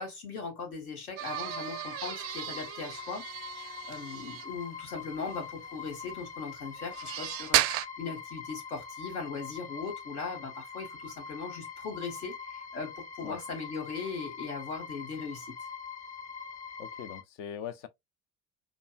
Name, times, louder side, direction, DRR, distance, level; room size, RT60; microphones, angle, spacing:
voice 1, 0.0-15.6, left 4 dB, 75° left, 1.3 m, -39 dB
sound 1, 1.2-4.5 5.2-5.4 6.8-7.9, right 15 dB, 35° right, 0.4 m, -33 dB
sound 2, 1.3-17.2, left 5 dB, 15° left, 0.5 m, -43 dB
voice 2, 16.8-17.9, left 9 dB, 60° left, 0.7 m, -41 dB
5.1 x 2.1 x 2.3 m
figure-of-eight pair, 60°, 44 cm